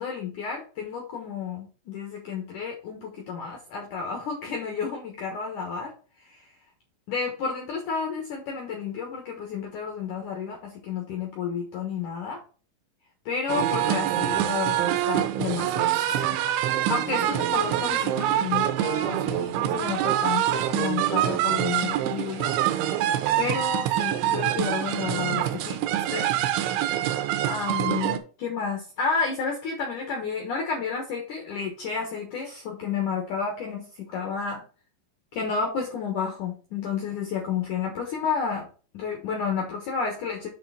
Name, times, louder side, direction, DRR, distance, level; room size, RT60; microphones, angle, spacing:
voice 1, 0.0-5.9 6.2-6.5 7.1-12.4 13.2-16.4 16.9-22.5 23.0-25.8 26.1-26.3 27.5-34.6 35.3-38.7 38.9-40.5, left 5 dB, 85° left, 2 dB, 1.7 m, -31 dB
sound 1, 13.5-28.2, right 12 dB, 80° right, 3.0 m, -25 dB
8.8 x 3.4 x 5.7 m, 0.37 s
omnidirectional pair, 5.6 m